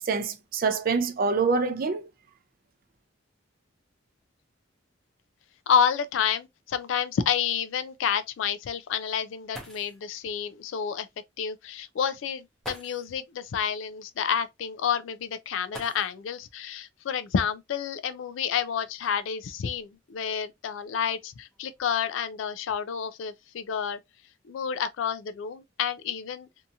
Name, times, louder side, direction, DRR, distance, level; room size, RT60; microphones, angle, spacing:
voice 1, 0.1-2.1, right 4 dB, 45° right, 0.4 m, -25 dB
sound 1, 5.6-5.7 6.1-6.2 6.8-6.9 9.2-9.3 9.5-10.1 11.4-11.5 12.6-13.2 15.7-16.4 17.8-17.9 18.6-20.1 20.8-21.2 21.5-21.9, equal, ahead, 0.7 m, -46 dB
voice 2, 5.7-11.1 11.4-24.0 24.5-26.5, left 7 dB, 70° left, 0.3 m, -29 dB
2.7 x 2.6 x 2.2 m
head